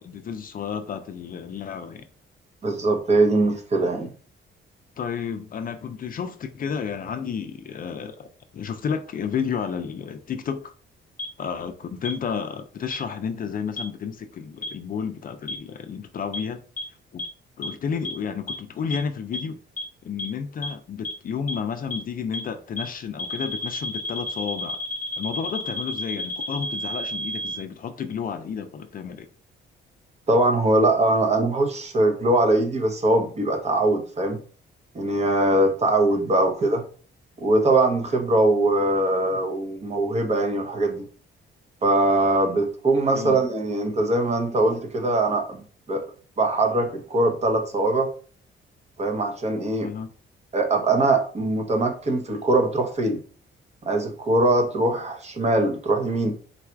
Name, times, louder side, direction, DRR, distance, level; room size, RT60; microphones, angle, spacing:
voice 1, 0.0-2.1 5.0-8.3 8.5-10.7 11.4-16.6 17.1-17.2 17.6-19.6 20.0-24.8 25.2-29.3 43.1-43.4 49.8-50.1, left 6 dB, 45° left, 0.4 m, -31 dB
voice 2, 2.6-4.1 30.3-34.4 34.9-36.8 37.4-41.1 41.8-46.1 46.4-48.1 49.0-49.9 50.5-53.2 53.8-56.3, right 2 dB, 35° right, 0.8 m, -22 dB
sound 1, 11.2-11.3 12.0-12.1 12.9-13.0 13.8-13.9 14.6-14.7 15.5-15.6 16.3-16.4 16.8-16.9 17.2-17.3 17.6-17.7 18.0-18.1 18.5-18.6 18.9-19.0 19.3-19.4 19.8-19.9 20.2-20.3 20.6-20.7 21.0-21.1 21.5-21.6 21.9-22.0 22.3-22.4 22.8-22.9 23.2-27.6, left 1 dB, 10° left, 0.8 m, -30 dB
4.0 x 2.4 x 4.5 m
cardioid pair, 140°, 20 cm